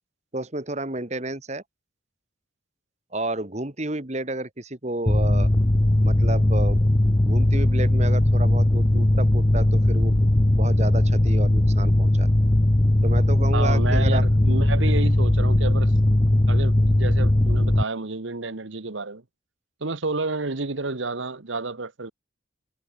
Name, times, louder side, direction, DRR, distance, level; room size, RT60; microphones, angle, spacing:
voice 1, 0.3-1.6 3.1-5.5 6.0-6.8 7.2-10.3 10.6-12.3 13.0-14.2, right 2 dB, 35° right, 1.9 m, -31 dB
Mechanical fan, 5.1-17.8, left 1 dB, 20° left, 0.7 m, -19 dB
voice 2, 13.5-15.9 16.5-19.2 19.8-22.1, right 3 dB, 75° right, 1.3 m, -30 dB
head